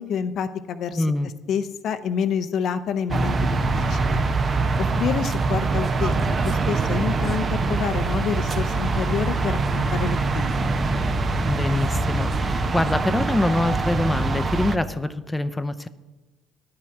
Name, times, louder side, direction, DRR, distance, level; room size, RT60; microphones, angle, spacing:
voice 1, 0.0-1.0 1.5-4.2 4.8-10.5, left 7 dB, 60° left, 10 dB, 0.6 m, -28 dB
voice 2, 0.9-1.3 11.5-15.9, left 2 dB, 10° left, 10 dB, 0.6 m, -25 dB
sound 1, 3.1-14.8, right 3 dB, 40° right, 0.9 m, -23 dB
11.0 x 5.8 x 7.7 m, 1.2 s
hypercardioid pair, 65°, 0 cm